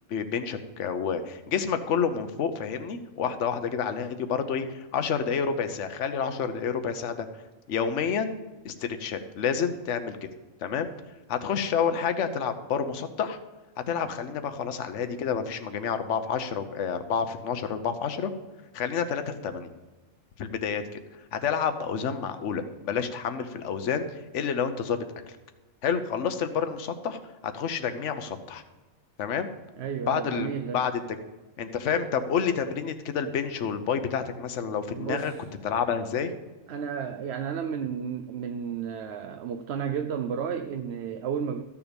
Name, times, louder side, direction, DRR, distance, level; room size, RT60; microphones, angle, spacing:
voice 1, 0.1-7.4 7.7-8.3 8.6-10.3 10.6-10.9 11.3-13.4 13.9-18.3 18.7-19.7 20.4-21.0 21.3-25.4 25.8-28.6 29.2-29.5 30.1-30.5 30.7-30.9 31.6-35.3 35.6-36.3, left 7 dB, 65° left, 9 dB, 1.2 m, -29 dB
voice 2, 29.8-30.8 34.9-35.3 36.7-41.6, right 7 dB, 60° right, 7 dB, 0.8 m, -32 dB
13.5 x 7.1 x 5.2 m, 1.2 s
omnidirectional pair, 1.3 m